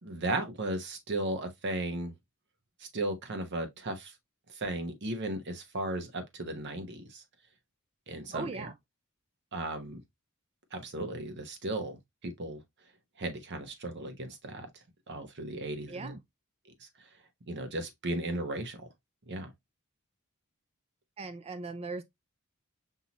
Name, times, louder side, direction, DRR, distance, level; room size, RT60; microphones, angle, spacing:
voice 1, 0.0-2.1 2.9-4.1 4.5-7.2 8.1-8.7 9.5-10.0 10.7-12.6 13.2-14.7 15.1-16.2 16.8-16.9 17.5-18.9 19.3-19.5, right 1 dB, 55° right, 1.0 m, -35 dB
voice 2, 8.3-8.7 15.9-16.2 21.2-22.0, right 4 dB, 25° right, 0.3 m, -38 dB
5.6 x 2.8 x 2.9 m
head